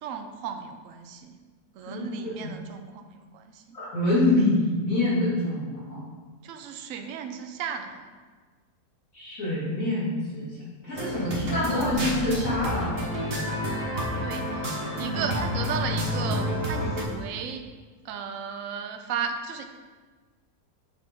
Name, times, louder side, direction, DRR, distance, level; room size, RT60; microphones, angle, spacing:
voice 1, 0.0-1.4 1.7-3.6 6.4-8.1 14.2-17.7 18.0-19.6, right 6 dB, 65° right, 6 dB, 0.9 m, -35 dB
voice 2, 1.9-2.5 3.7-6.0 9.1-10.5 10.8-12.9, left 2 dB, 55° left, -8 dB, 2.9 m, -26 dB
sound 1, 10.9-17.0, equal, 40° right, 1.2 m, -29 dB
7.0 x 6.0 x 3.7 m, 1.4 s
omnidirectional pair, 1.8 m